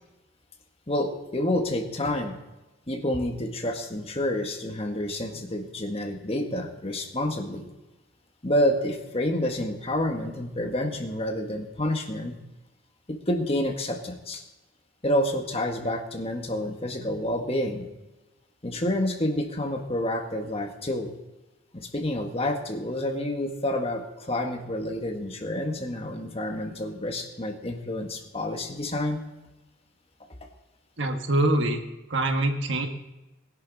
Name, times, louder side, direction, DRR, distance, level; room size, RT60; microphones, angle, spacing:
voice 1, 0.9-2.4 2.9-7.7 8.4-12.3 13.1-14.4 15.0-17.9 18.6-21.1 21.7-29.2, left 1 dB, 30° left, 4 dB, 1.6 m, -28 dB
voice 2, 31.0-31.8 32.1-32.9, right 1 dB, 65° right, 5 dB, 1.5 m, -24 dB
20.5 x 11.0 x 4.1 m, 1.1 s
head